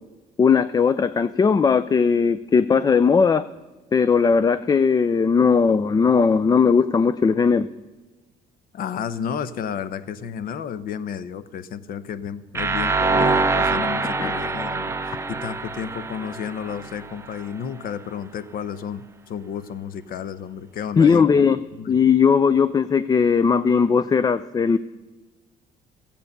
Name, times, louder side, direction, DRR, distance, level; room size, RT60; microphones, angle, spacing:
voice 1, 0.4-3.4 3.9-7.7 14.2-14.3 21.0-21.6 21.9-24.8, left 5 dB, 25° left, 14 dB, 0.4 m, -18 dB
voice 2, 8.7-21.2 21.7-22.0, left 8 dB, 60° left, 15 dB, 0.8 m, -32 dB
sound 1, 12.5-17.4, right 3 dB, 15° right, 0.7 m, -24 dB
14.0 x 8.5 x 6.7 m, 1.2 s
cardioid pair, 110°, 17 cm